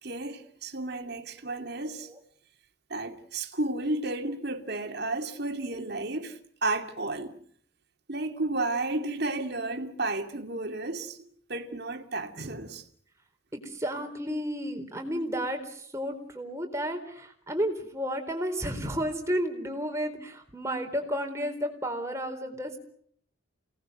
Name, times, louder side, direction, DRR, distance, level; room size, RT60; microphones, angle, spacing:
voice 1, 0.0-2.1 2.9-7.3 8.1-12.8, right 2 dB, 50° right, 2.5 m, -32 dB
voice 2, 13.5-22.8, equal, 15° right, 4.2 m, -32 dB
29.0 x 19.0 x 7.9 m
head